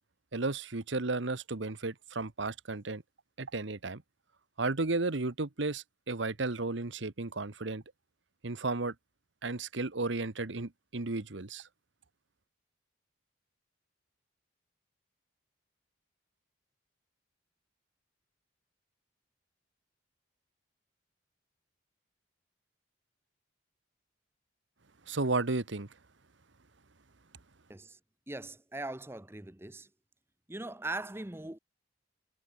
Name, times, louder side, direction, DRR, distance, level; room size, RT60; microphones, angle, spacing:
voice 1, 0.3-3.0 3.4-4.0 4.6-7.8 8.4-8.9 9.4-11.7 25.1-25.9, right 3 dB, 70° right, 1.2 m, -33 dB
voice 2, 28.3-29.9 30.5-31.6, right 2 dB, 10° right, 0.7 m, -40 dB
head